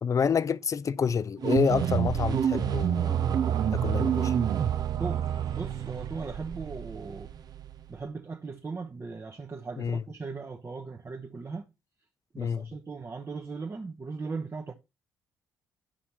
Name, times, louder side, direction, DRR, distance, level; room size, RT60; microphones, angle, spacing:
voice 1, 0.0-3.3 3.7-4.3 9.8-10.0 12.4-12.7, left 6 dB, 40° left, 0.6 m, -28 dB
sound 1, 1.4-8.0, right 9 dB, 50° right, 0.8 m, -28 dB
voice 2, 5.0-7.3 7.9-11.6 12.3-14.7, right 4 dB, 30° right, 1.2 m, -38 dB
11.5 x 5.7 x 4.2 m
hypercardioid pair, 45°, 8 cm